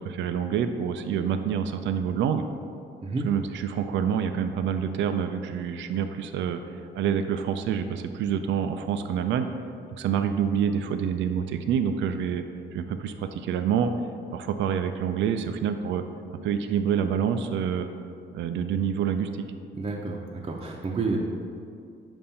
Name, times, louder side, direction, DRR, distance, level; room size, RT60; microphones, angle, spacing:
voice 1, 0.0-2.4 3.2-6.6 7.0-9.5 10.0-12.4 12.7-13.9 14.3-16.0 16.3-17.9 18.3-19.3, right 8 dB, 70° right, 8 dB, 0.4 m, -27 dB
voice 2, 19.8-21.2, right 3 dB, 30° right, -2 dB, 0.6 m, -30 dB
7.0 x 2.6 x 5.5 m, 2.4 s
cardioid pair, 90°, 20 cm